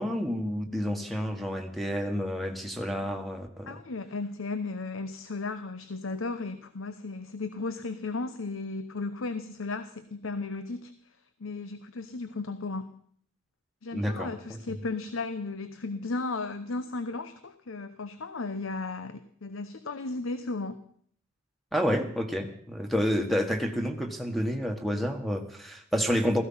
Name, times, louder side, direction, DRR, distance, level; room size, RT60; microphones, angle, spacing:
voice 1, 0.0-3.8 13.9-14.8 21.7-26.4, equal, ahead, 5 dB, 1.5 m, -29 dB
voice 2, 3.7-10.9 11.4-13.0 13.8-20.8, left 3 dB, 85° left, 11 dB, 0.9 m, -35 dB
16.0 x 14.5 x 5.6 m, 0.62 s
head